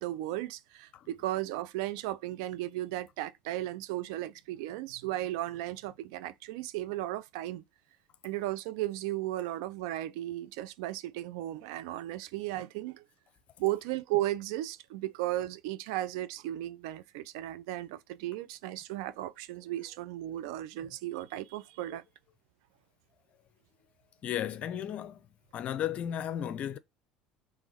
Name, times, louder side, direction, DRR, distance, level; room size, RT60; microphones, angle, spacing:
voice 1, 0.0-7.6 8.2-13.1 13.6-22.0, right 15 dB, 60° right, 0.4 m, -35 dB
voice 2, 24.2-25.3 25.5-26.8, left 10 dB, 45° left, 0.5 m, -34 dB
3.6 x 3.3 x 4.1 m
figure-of-eight pair, 65°, 3 cm